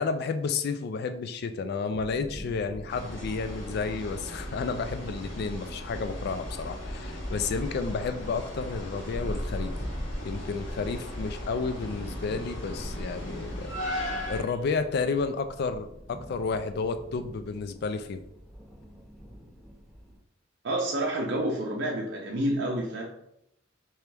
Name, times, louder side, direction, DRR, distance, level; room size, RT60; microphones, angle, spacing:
voice 1, 0.0-9.7 10.2-13.8 14.3-18.2, left 4 dB, 55° left, 10 dB, 0.3 m, -31 dB
sound 1, 1.9-20.2, equal, ahead, 0.7 m, -48 dB
sound 2, 2.9-14.4, equal, 70° left, 1.2 m, -36 dB
voice 2, 20.6-23.0, right 1 dB, 60° right, -2 dB, 0.6 m, -29 dB
3.3 x 3.0 x 3.3 m, 0.77 s
head